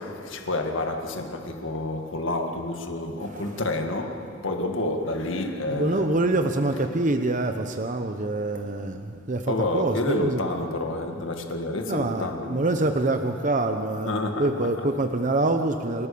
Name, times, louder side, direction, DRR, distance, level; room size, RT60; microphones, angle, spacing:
voice 1, 0.0-6.1 9.5-12.6 14.0-14.9, left 2 dB, 90° left, 1.8 m, -29 dB
voice 2, 5.7-10.4 11.9-14.1 14.4-16.1, right 2 dB, 40° right, 0.8 m, -25 dB
28.5 x 13.5 x 6.9 m
head